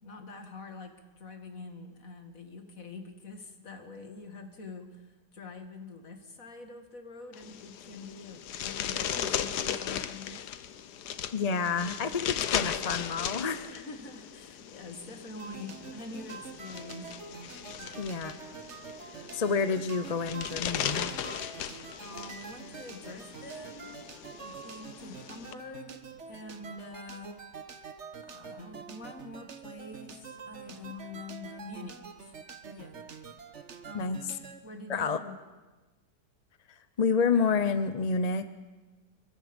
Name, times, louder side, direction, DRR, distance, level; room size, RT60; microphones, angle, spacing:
voice 1, 0.0-10.5 13.7-17.1 17.8-18.1 22.0-24.1 24.4-26.0 26.3-27.3 28.3-32.3 32.7-33.1 33.8-34.2 34.6-35.4, left 3 dB, 50° left, 5 dB, 2.4 m, -45 dB
sound 1, 7.3-25.5, left 9 dB, 70° left, 1.4 m, -37 dB
voice 2, 11.3-13.8 18.0-18.3 19.3-21.1 33.9-34.2 34.9-35.2 37.0-38.5, left 5 dB, 35° left, 11 dB, 0.6 m, -29 dB
sound 2, 15.4-34.6, right 5 dB, 45° right, 1.4 m, -46 dB
26.0 x 22.5 x 5.3 m, 1.2 s
omnidirectional pair, 1.9 m